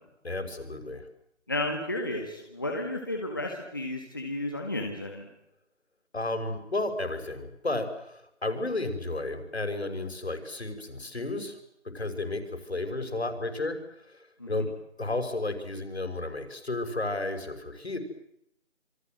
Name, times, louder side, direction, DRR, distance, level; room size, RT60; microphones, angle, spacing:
voice 1, 0.2-1.1 6.1-11.6 11.9-13.8 14.0-14.7 15.0-18.0, left 2 dB, 60° left, 7 dB, 5.9 m, -32 dB
voice 2, 1.5-5.3 14.4-14.7, left 1 dB, 15° left, 2 dB, 1.8 m, -33 dB
27.5 x 24.0 x 7.8 m, 0.76 s
figure-of-eight pair, 180°, 36 cm